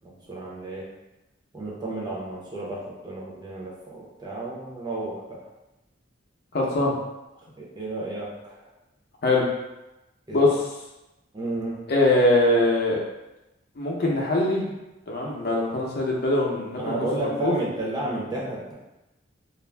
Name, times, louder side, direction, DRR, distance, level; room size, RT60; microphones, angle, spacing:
voice 1, 0.0-0.9 1.5-5.5 7.6-8.6 10.3-10.4 11.3-11.8 16.8-18.7, right 2 dB, 20° right, -4 dB, 0.6 m, -32 dB
voice 2, 6.5-6.9 9.2-9.4 10.3-10.6 11.9-13.0 13.8-14.7 15.1-17.5, left 2 dB, 55° left, -2 dB, 0.6 m, -22 dB
2.4 x 2.0 x 3.2 m, 0.99 s
head